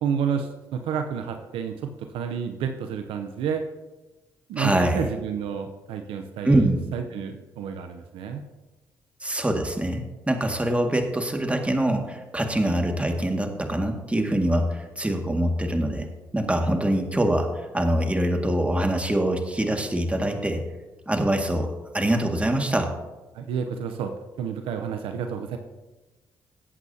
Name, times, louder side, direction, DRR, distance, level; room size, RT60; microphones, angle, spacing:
voice 1, 0.0-3.7 4.5-8.4 23.3-24.1 24.4-25.6, right 7 dB, 75° right, 6 dB, 0.7 m, -30 dB
voice 2, 4.6-5.0 6.4-6.8 9.2-16.1 16.3-20.6 21.1-21.7 21.9-22.9, right 1 dB, 15° right, 3 dB, 2.0 m, -24 dB
18.5 x 8.2 x 2.8 m, 1.1 s
hypercardioid pair, 50°, 9 cm